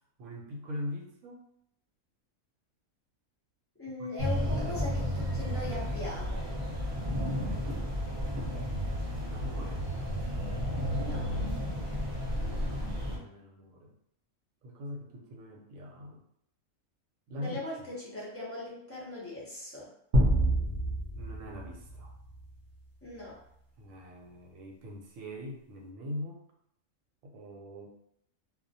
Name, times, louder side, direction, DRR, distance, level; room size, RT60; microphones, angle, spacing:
voice 1, 0.2-1.5 4.0-4.1 4.4-4.6 7.1-7.8 9.1-9.8 12.6-13.9 14.6-16.2 17.3-17.6 21.1-22.1 23.8-26.4 27.2-28.0, left 1 dB, 80° right, 0 dB, 1.0 m, -42 dB
voice 2, 3.8-6.5 10.9-11.4 17.4-19.9 23.0-23.4, left 2 dB, 20° left, -7 dB, 0.3 m, -40 dB
sound 1, 4.2-13.2, equal, 25° right, 0.7 m, -32 dB
sound 2, 20.1-22.7, right 1 dB, 60° right, 0.5 m, -28 dB
2.3 x 2.1 x 2.6 m, 0.72 s
omnidirectional pair, 1.4 m